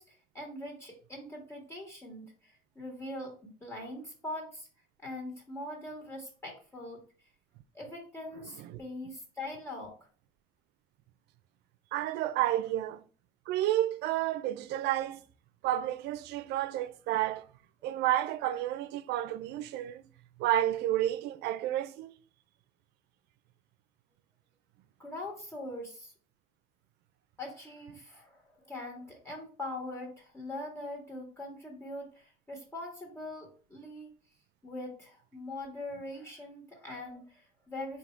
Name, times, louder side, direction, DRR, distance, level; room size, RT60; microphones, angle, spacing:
voice 1, 0.0-4.7 5.0-7.0 7.7-9.9 25.0-26.1 27.4-34.1 34.6-38.0, left 1 dB, 15° left, 1.4 m, -42 dB
voice 2, 11.9-13.1 13.5-15.2 15.6-17.5 17.8-20.0 20.4-22.1, right 13 dB, 80° right, 0.4 m, -30 dB
3.6 x 2.7 x 4.4 m
cardioid pair, 110°, 17 cm